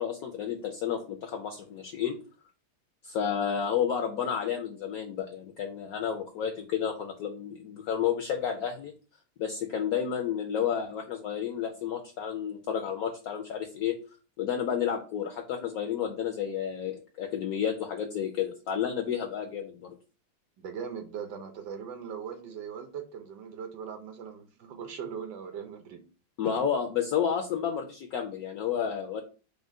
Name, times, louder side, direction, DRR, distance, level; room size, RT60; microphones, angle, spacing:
voice 1, 0.0-2.2 3.0-8.9 9.4-13.9 14.4-20.0 26.4-29.2, left 8 dB, 75° left, 0.8 m, -31 dB
voice 2, 20.6-26.0 26.4-26.6, right 7 dB, 70° right, 1.2 m, -40 dB
5.0 x 2.1 x 3.6 m
omnidirectional pair, 2.1 m